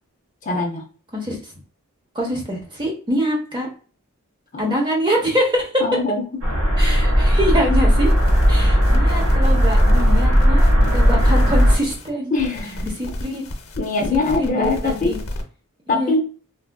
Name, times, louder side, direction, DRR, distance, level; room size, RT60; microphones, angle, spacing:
voice 1, 0.4-0.8 4.5-4.7 5.8-6.2 7.5-7.8 12.3-13.0 13.8-15.2 15.9-16.2, left 3 dB, 35° left, 2 dB, 0.5 m, -22 dB
voice 2, 2.1-3.7 4.6-5.8 6.8-8.1 8.5-12.3 13.0-13.4 14.1-15.2 15.9-16.1, equal, 20° right, 0 dB, 0.8 m, -24 dB
sound 1, 6.4-11.8, equal, 70° right, 1.1 m, -16 dB
sound 2, 8.1-8.5 8.8-12.1 12.4-15.4, left 1 dB, 75° left, 0.7 m, -32 dB
3.3 x 2.4 x 2.2 m, 0.39 s
head